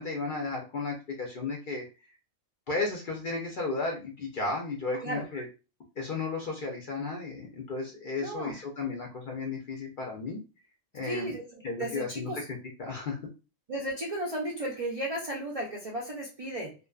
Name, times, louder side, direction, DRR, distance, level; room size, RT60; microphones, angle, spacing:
voice 1, 0.0-1.8 2.7-5.5 6.0-10.4 10.9-11.3 11.6-13.2, left 3 dB, 60° left, 0 dB, 0.5 m, -34 dB
voice 2, 4.9-5.4 8.2-8.6 11.0-12.5 13.7-16.7, right 1 dB, 60° right, -2 dB, 0.3 m, -35 dB
2.5 x 2.2 x 2.2 m, 0.31 s
omnidirectional pair, 1.3 m